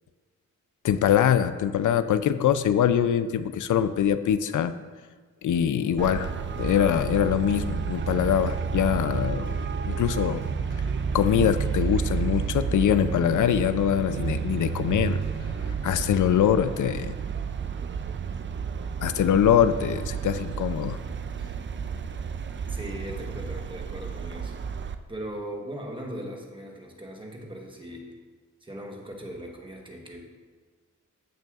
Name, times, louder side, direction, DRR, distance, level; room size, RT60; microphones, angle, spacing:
voice 1, 0.8-4.7 5.4-6.3 6.6-10.4 11.1-15.2 15.7-17.1 19.0-21.0, left 9 dB, 70° left, 12 dB, 0.5 m, -23 dB
sound 1, 5.8-16.0, left 2 dB, 90° left, 2.0 m, -48 dB
Traffic noise roadway noise, 6.0-25.0, right 6 dB, 40° right, 0.4 m, -31 dB
voice 2, 22.7-24.6 25.1-28.1 28.6-30.2, equal, 15° right, 0 dB, 1.1 m, -39 dB
14.5 x 6.6 x 2.4 m, 1.5 s
wide cardioid pair, 155°, 31 cm